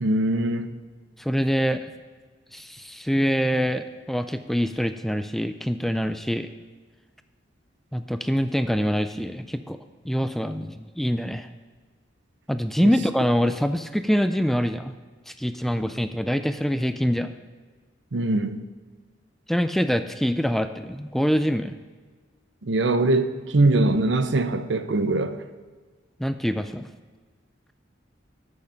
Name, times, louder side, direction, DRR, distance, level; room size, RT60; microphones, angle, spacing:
voice 1, 0.0-0.7 12.8-12.9 18.1-18.6 22.6-25.4, right 2 dB, 70° right, 10 dB, 0.7 m, -22 dB
voice 2, 1.2-1.8 2.5-6.5 7.9-9.8 10.1-11.5 12.5-14.9 15.3-17.3 19.5-21.7 26.2-26.9, equal, ahead, 9 dB, 0.3 m, -25 dB
13.5 x 6.6 x 5.8 m, 1.5 s
head